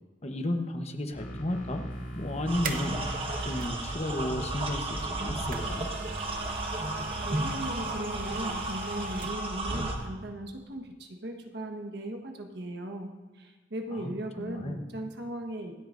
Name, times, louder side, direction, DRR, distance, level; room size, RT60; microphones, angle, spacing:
voice 1, 0.2-1.9 2.1-5.9 13.9-14.8, left 1 dB, 35° left, 5 dB, 1.0 m, -33 dB
sound 1, 1.1-6.2, right 1 dB, 75° left, 4.7 m, -40 dB
sound 2, 2.0-3.8 5.0-9.6 10.0-10.1, right 3 dB, 50° right, 0.8 m, -40 dB
sound 3, 2.5-10.0, right 2 dB, 30° right, 1.4 m, -34 dB
voice 2, 7.2-15.7, right 1 dB, 65° right, 4 dB, 1.3 m, -38 dB
25.5 x 8.6 x 2.6 m, 1.3 s
head